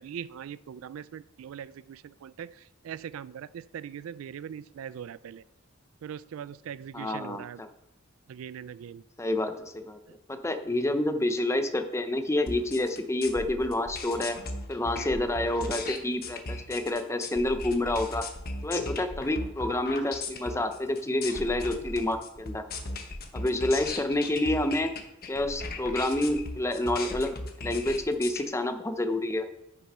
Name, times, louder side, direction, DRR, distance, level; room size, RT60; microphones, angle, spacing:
voice 1, 0.0-2.5 2.8-5.4 6.0-7.6 8.3-9.0 18.8-18.9, right 8 dB, 85° right, 17 dB, 0.3 m, -41 dB
voice 2, 6.9-7.7 9.2-10.0 10.3-14.4 14.7-18.2 18.6-22.6 23.3-24.9 25.3-29.5, left 1 dB, 15° left, 8 dB, 0.7 m, -28 dB
sound 1, 12.5-28.4, left 3 dB, 50° left, 1.1 m, -37 dB
9.9 x 6.8 x 4.2 m, 0.82 s
head